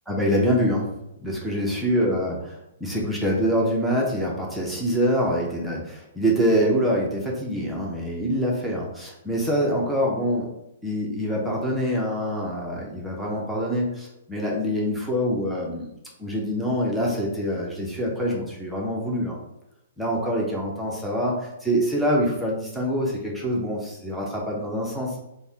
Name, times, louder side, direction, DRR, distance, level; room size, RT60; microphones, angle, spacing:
voice 1, 0.1-0.9 1.2-2.4 2.8-10.5 10.8-15.9 16.2-19.4 20.0-25.2, equal, ahead, -4 dB, 0.6 m, -25 dB
4.0 x 2.1 x 3.5 m, 0.86 s
hypercardioid pair, 155°, 0 cm